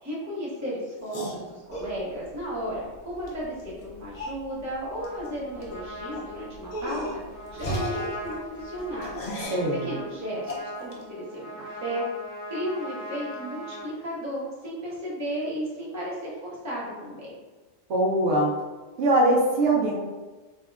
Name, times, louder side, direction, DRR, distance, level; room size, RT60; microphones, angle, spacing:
voice 1, 0.0-7.2 7.5-9.2 9.8-12.0 12.5-17.4, equal, 20° right, -7 dB, 0.6 m, -34 dB
sound 1, 1.0-1.9 3.3-3.4 3.6-3.7 4.1-4.4 5.0-5.3 5.5-5.7 6.1-6.3 6.7-7.2 7.5-9.7 10.4-11.0, left 1 dB, 60° left, 0.4 m, -35 dB
Whoosh swoosh swish, 1.7-9.5, right 2 dB, 85° left, 1.3 m, -43 dB
Trumpet, 5.0-13.9, equal, 10° left, 0.9 m, -40 dB
voice 2, 9.5-10.0 17.9-18.5 19.0-19.9, right 1 dB, 70° right, -2 dB, 0.9 m, -22 dB
3.5 x 2.2 x 2.2 m, 1.3 s
omnidirectional pair, 1.2 m